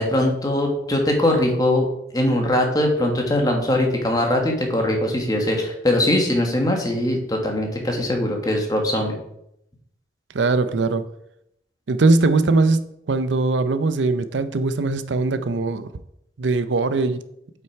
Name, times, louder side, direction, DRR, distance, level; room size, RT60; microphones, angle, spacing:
voice 1, 0.0-1.9 2.1-9.2, left 1 dB, 20° left, 1.5 m, -21 dB
voice 2, 10.3-11.1 11.9-15.9 16.4-17.3, right 3 dB, 85° right, 0.6 m, -20 dB
7.9 x 5.9 x 4.6 m
head